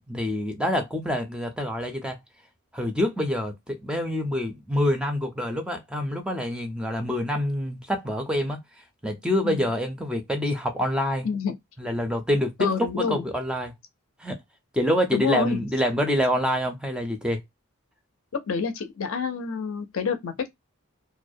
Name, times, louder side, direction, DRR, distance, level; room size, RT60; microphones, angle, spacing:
voice 1, 0.1-2.2 2.7-8.6 9.0-11.3 11.8-12.7 13.0-13.7 14.2-14.4 14.7-17.4, equal, 5° right, 0.4 m, -26 dB
voice 2, 11.2-11.5 12.6-13.2 15.1-15.6 18.3-20.5, left 6 dB, 70° left, 0.5 m, -28 dB
2.3 x 2.1 x 2.5 m
head